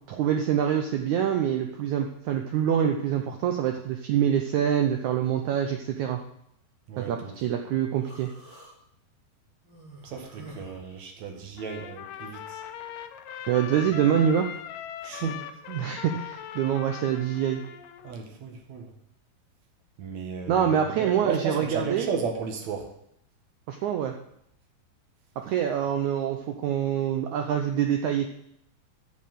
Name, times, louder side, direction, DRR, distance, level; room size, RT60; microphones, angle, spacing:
voice 1, 0.1-6.2 7.0-8.3 13.5-14.5 15.7-17.6 20.5-22.1 23.7-24.1 25.5-28.3, right 9 dB, 90° right, 4 dB, 1.7 m, -25 dB
voice 2, 6.9-7.4 10.0-12.6 15.0-15.4 18.0-18.9 20.0-22.9, right 6 dB, 55° right, 3 dB, 2.4 m, -34 dB
Human voice, 8.0-8.7 9.6-11.6, right 1 dB, 30° right, 3.7 m, -48 dB
Trumpet, 11.6-18.2, left 10 dB, 75° left, 2.2 m, -40 dB
8.8 x 6.5 x 7.6 m, 0.74 s
omnidirectional pair, 4.4 m